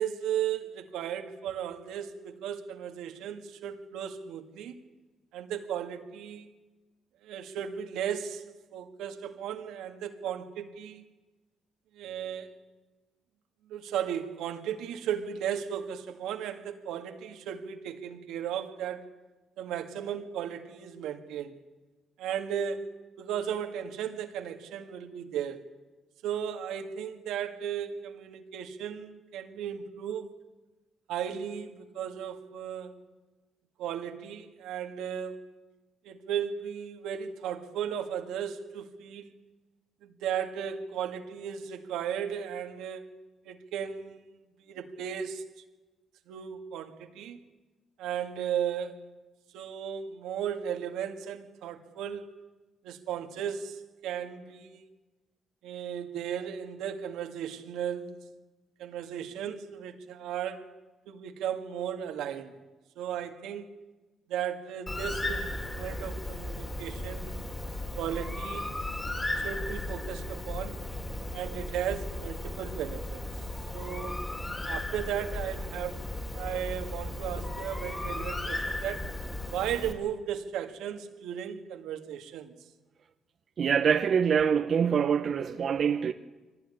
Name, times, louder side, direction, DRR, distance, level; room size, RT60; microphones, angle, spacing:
voice 1, 0.0-4.8 5.3-6.5 7.2-11.0 11.9-12.5 13.7-19.1 19.6-21.5 22.2-22.9 23.2-25.6 26.2-30.3 31.1-32.9 33.8-35.5 36.0-39.4 40.0-43.0 43.4-44.2 44.6-45.4 46.3-47.4 48.0-49.0 49.5-52.3 52.8-54.8 55.6-58.2 58.8-60.7 61.1-62.5 63.0-63.7 64.3-67.4 68.0-68.7 69.3-70.8 71.3-73.2 73.7-74.2 74.7-76.1 76.3-79.1 79.5-82.5, right 9 dB, 90° right, 1.9 m, -35 dB
Bird, 64.9-79.9, left 1 dB, 20° left, 3.5 m, -36 dB
voice 2, 83.6-86.1, right 7 dB, 55° right, 0.8 m, -25 dB
24.0 x 18.0 x 10.0 m
cardioid pair, 90°, 0 cm